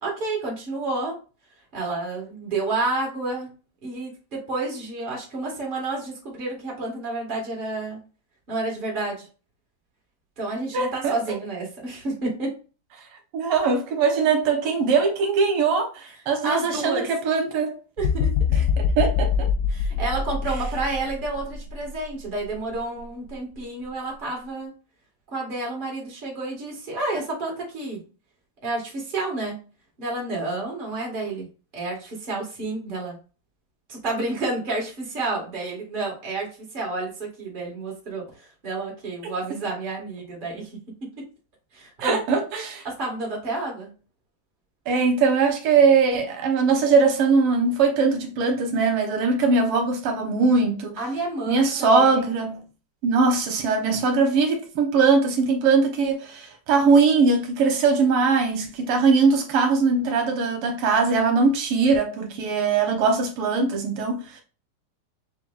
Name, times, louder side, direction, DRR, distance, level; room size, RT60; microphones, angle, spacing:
voice 1, 0.0-1.1 1.7-3.5 3.8-8.0 8.5-9.3 10.4-12.5 16.4-17.1 18.0-18.3 19.7-24.7 25.3-28.0 28.6-29.6 30.0-31.5 31.7-33.2 33.9-40.7 41.0-41.2 41.7-42.2 42.8-43.9 51.0-52.3, right 2 dB, 25° right, 1.6 m, -30 dB
voice 2, 10.7-11.2 13.3-17.7 18.5-19.5 42.0-42.8 44.9-51.0 51.5-52.6 53.0-64.4, right 4 dB, 90° right, 1.9 m, -21 dB
sound 1, 18.0-22.0 22.5-22.7, left 6 dB, 85° left, 0.9 m, -24 dB
6.9 x 2.5 x 2.4 m
omnidirectional pair, 2.4 m